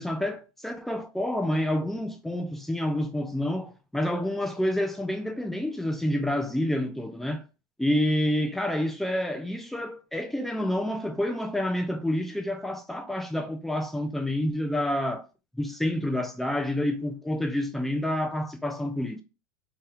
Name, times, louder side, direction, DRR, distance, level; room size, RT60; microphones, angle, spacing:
voice 1, 0.0-7.4 7.8-15.2 15.5-19.2, left 1 dB, ahead, 0.4 m, -28 dB
2.8 x 2.2 x 3.2 m
supercardioid pair, 140°, 12 cm